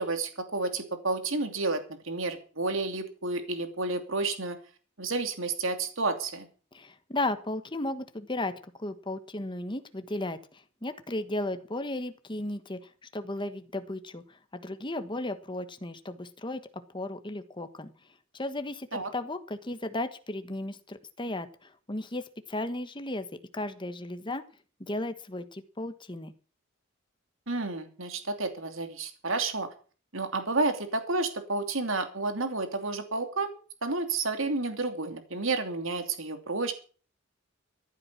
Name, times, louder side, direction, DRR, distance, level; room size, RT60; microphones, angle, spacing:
voice 1, 0.0-4.6 5.0-6.5 18.9-19.1 27.5-29.7 30.1-33.5 33.8-36.7, right 3 dB, 70° right, 7 dB, 2.8 m, -30 dB
voice 2, 6.7-8.5 8.8-12.8 13.1-16.6 16.9-17.9 18.3-22.2 22.5-23.3 23.5-24.4 24.8-26.3, left 1 dB, 25° left, 9 dB, 1.3 m, -35 dB
15.0 x 11.5 x 6.1 m, 0.39 s
head